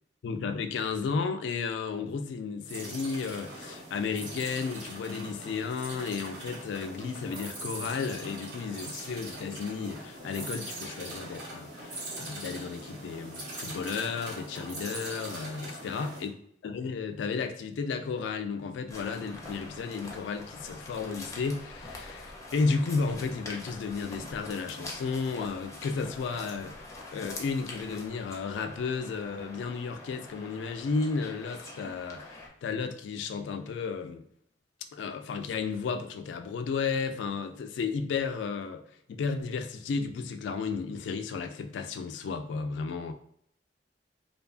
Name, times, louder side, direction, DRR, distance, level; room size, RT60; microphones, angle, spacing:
voice 1, 0.2-16.3 16.6-34.3 34.9-38.8 39.1-43.1, left 5 dB, 85° left, 0.3 m, -33 dB
sound 1, 2.6-16.3, right 1 dB, 70° right, 0.8 m, -41 dB
sound 2, 18.9-32.5, left 2 dB, 20° left, 0.4 m, -44 dB
2.7 x 2.3 x 2.3 m
head